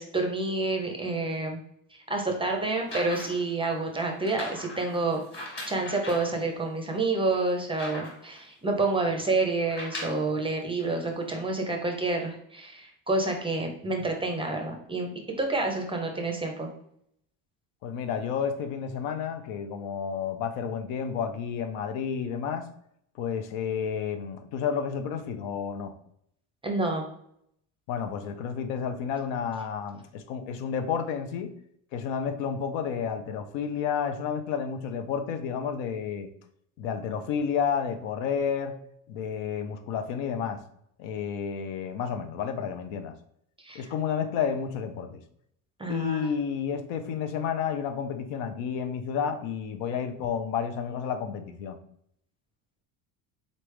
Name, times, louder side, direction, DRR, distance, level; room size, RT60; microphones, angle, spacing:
voice 1, 0.0-1.6 2.1-5.2 5.7-15.1 15.4-16.7 26.6-27.0 43.6-43.8 45.8-46.3, right 3 dB, 15° right, 3 dB, 0.5 m, -28 dB
sound 1, 2.7-3.5 4.2-6.4 6.9-7.0 7.3-8.4 9.6-10.3 11.2-11.3, left 1 dB, 25° left, 1.5 m, -40 dB
voice 2, 17.8-22.6 23.2-25.9 27.9-31.5 31.9-36.3 36.8-38.7 39.1-40.6 41.0-43.1 43.7-45.2 45.9-51.8, left 7 dB, 80° left, 8 dB, 0.7 m, -31 dB
4.0 x 3.3 x 3.2 m, 0.71 s
cardioid pair, 135°, 43 cm